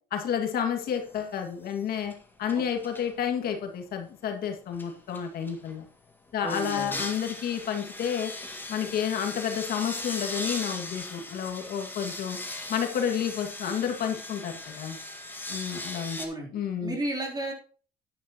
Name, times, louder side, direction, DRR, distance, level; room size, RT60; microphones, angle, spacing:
voice 1, 0.1-2.1 2.4-5.9 6.3-8.3 8.7-12.4 12.7-15.0 15.5-16.2 16.5-17.0, left 8 dB, 65° left, 4 dB, 2.0 m, -30 dB
sound 1, 1.1-1.4 1.7-3.1 4.7-5.7 6.5-16.3, left 2 dB, 10° left, 1.8 m, -38 dB
voice 2, 6.4-7.0 16.2-16.5 16.8-17.5, right 1 dB, 25° right, -1 dB, 3.4 m, -33 dB
10.0 x 9.8 x 3.0 m, 0.41 s
cardioid pair, 110°, 17 cm